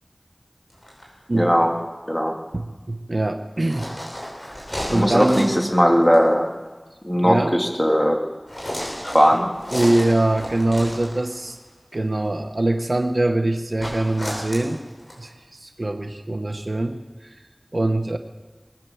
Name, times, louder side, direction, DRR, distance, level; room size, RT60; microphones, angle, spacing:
sound 1, 0.7-1.0 3.6-5.7 6.0-6.3 8.5-11.5 13.8-15.2, equal, 40° left, 5.4 m, -33 dB
voice 1, 1.3-1.7 2.1-2.3 4.9-6.5 7.0-8.2 9.0-9.5, equal, 10° left, 1 dB, 2.5 m, -18 dB
voice 2, 2.5-3.9 4.9-5.5 7.2-7.5 9.3-9.4 9.7-11.6 11.9-14.8 15.2-17.0 17.3-17.4 17.7-18.2, right 2 dB, 70° right, 7 dB, 1.0 m, -23 dB
21.5 x 9.2 x 7.1 m, 1.3 s
wide cardioid pair, 45°, 0 cm